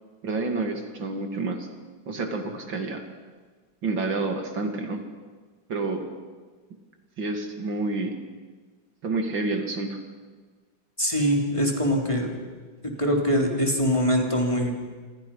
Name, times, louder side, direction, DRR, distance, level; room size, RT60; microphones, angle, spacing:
voice 1, 0.2-1.7 2.1-3.0 3.8-5.0 5.7-6.1 7.2-8.1 9.0-10.0, right 3 dB, 70° right, 4 dB, 3.0 m, -29 dB
voice 2, 11.0-12.3 12.8-14.7, equal, 15° left, 0 dB, 3.6 m, -23 dB
27.5 x 26.5 x 5.6 m, 1.4 s
omnidirectional pair, 2.1 m